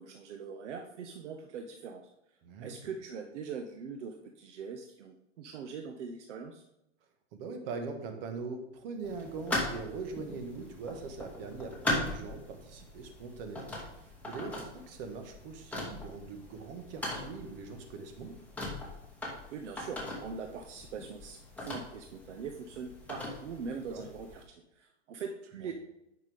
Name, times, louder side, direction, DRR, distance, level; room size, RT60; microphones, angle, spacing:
voice 1, 0.0-2.0 2.6-6.6 19.5-25.7, right 5 dB, 75° right, 4 dB, 0.9 m, -42 dB
voice 2, 2.4-2.7 7.3-18.3 23.7-24.1 25.6-25.7, right 4 dB, 50° right, 5 dB, 1.7 m, -42 dB
sound 1, 9.0-24.4, left 2 dB, 5° left, 2.3 m, -40 dB
9.2 x 5.8 x 3.6 m, 0.87 s
hypercardioid pair, 120°, 36 cm